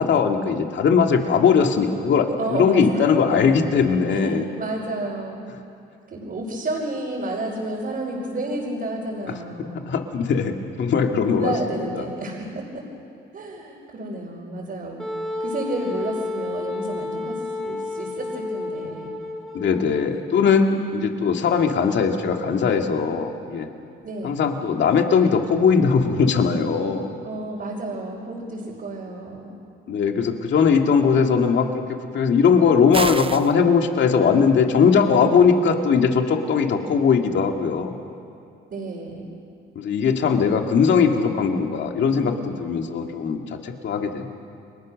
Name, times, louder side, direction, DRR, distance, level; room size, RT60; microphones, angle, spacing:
voice 1, 0.0-4.5 9.9-11.5 11.9-12.0 19.5-23.7 24.2-27.1 29.9-31.8 32.1-38.0 39.8-42.3 42.6-44.3, left 6 dB, 65° left, 3 dB, 2.3 m, -20 dB
voice 2, 2.4-3.1 4.1-5.5 6.1-9.8 11.0-12.8 13.3-15.1 15.4-19.1 24.0-24.3 27.2-29.6 34.7-35.6 38.7-39.3 42.1-42.4, right 2 dB, 50° right, -4 dB, 5.4 m, -31 dB
Wind instrument woodwind instrument, 15.0-20.1, left 2 dB, ahead, 3.4 m, -31 dB
sound 1, 32.9-33.5, right 5 dB, 25° right, 0.8 m, -27 dB
30.0 x 22.5 x 6.6 m, 2.5 s
cardioid pair, 90°, 20 cm